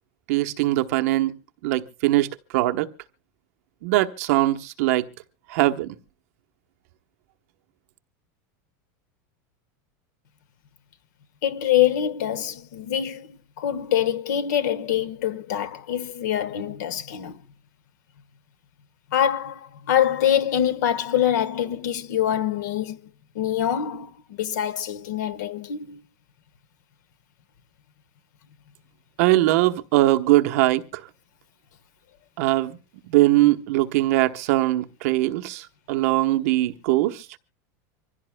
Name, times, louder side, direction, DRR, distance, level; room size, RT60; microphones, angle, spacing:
voice 1, 0.3-2.9 3.8-5.1 5.5-6.0 29.2-31.0 32.4-32.8 33.1-37.3, right 17 dB, 55° right, 1.0 m, -21 dB
voice 2, 11.4-17.4 19.1-23.0 23.3-26.0, left 10 dB, 80° left, 1.3 m, -25 dB
25.0 x 16.0 x 2.2 m
supercardioid pair, 175°, 9 cm